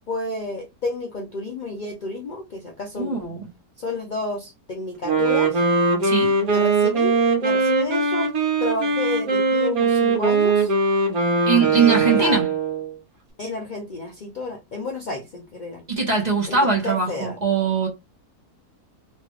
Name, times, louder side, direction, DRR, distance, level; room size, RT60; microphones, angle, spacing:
voice 1, 0.1-3.2 3.8-5.6 6.5-7.2 7.4-8.3 8.6-10.7 11.7-12.4 13.4-15.8 16.5-17.4, left 2 dB, 80° left, 0.4 m, -30 dB
voice 2, 3.0-3.5 6.0-6.4 11.5-12.5 15.9-17.9, right 5 dB, 30° right, 1.0 m, -21 dB
Wind instrument woodwind instrument, 5.0-13.0, right 4 dB, 65° right, 1.5 m, -20 dB
3.3 x 2.4 x 3.1 m
omnidirectional pair, 1.7 m